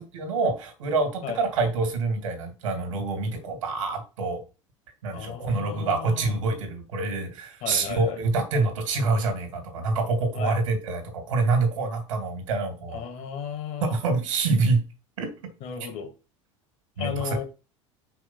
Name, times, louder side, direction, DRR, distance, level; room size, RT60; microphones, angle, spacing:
voice 1, 0.0-4.4 5.0-13.0 13.9-14.8 15.2-15.3 15.8-15.9 17.0-17.4, right 3 dB, 85° right, 6 dB, 2.6 m, -26 dB
voice 2, 5.1-6.3 7.6-8.2 10.3-10.6 12.9-13.9 15.6-16.1 17.0-17.4, left 8 dB, 60° left, 6 dB, 2.2 m, -34 dB
5.9 x 3.5 x 5.6 m, 0.31 s
hypercardioid pair, 80°, 16 cm